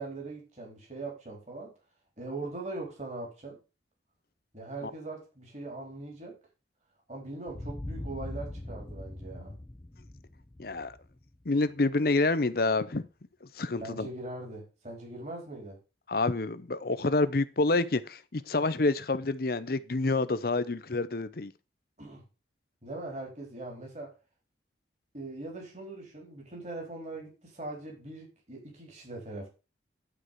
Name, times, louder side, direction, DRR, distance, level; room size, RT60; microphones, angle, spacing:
voice 1, 0.0-1.7 2.2-3.6 4.5-6.4 7.1-9.6 13.8-15.8 22.0-22.2 22.8-24.1 25.1-29.5, right 2 dB, 40° right, 3.9 m, -41 dB
sound 1, 7.5-12.1, left 1 dB, 20° left, 0.5 m, -42 dB
voice 2, 10.6-11.0 11.5-13.0 13.6-14.1 16.1-21.5, left 3 dB, 55° left, 0.7 m, -28 dB
11.0 x 4.8 x 6.3 m
head